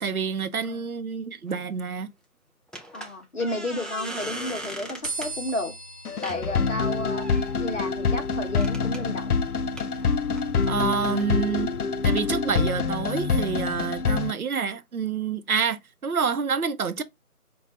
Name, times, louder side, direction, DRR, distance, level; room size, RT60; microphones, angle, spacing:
voice 1, 0.0-2.1 10.7-11.7 12.0-17.0, right 6 dB, 70° right, 0.7 m, -28 dB
sound 1, 1.5-1.6 2.7-5.3 6.2-6.4 7.1-7.5 8.5-9.0 9.8-11.3, right 1 dB, ahead, 0.4 m, -39 dB
voice 2, 2.9-5.7 6.2-7.3 7.6-9.4, left 1 dB, 55° left, 0.8 m, -32 dB
sound 2, 5.0-11.5, right 2 dB, 15° right, 1.4 m, -42 dB
sound 3, 6.1-14.3, left 5 dB, 80° left, 0.6 m, -26 dB
5.3 x 2.2 x 2.7 m
figure-of-eight pair, 165°, 45 cm